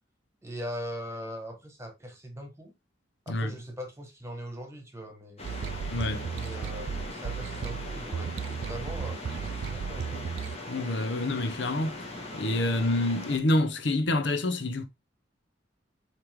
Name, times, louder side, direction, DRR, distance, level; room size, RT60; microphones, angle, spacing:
voice 1, 0.4-2.7 3.2-5.6 6.3-10.2, equal, 15° right, 1.5 m, -40 dB
sound 1, 5.4-13.4, left 2 dB, 35° left, 1.7 m, -40 dB
sound 2, 5.4-10.6, right 7 dB, 65° right, 0.3 m, -35 dB
voice 2, 5.9-6.3 10.7-12.0 12.3-14.8, left 2 dB, 65° left, 0.9 m, -27 dB
8.2 x 3.3 x 3.6 m
head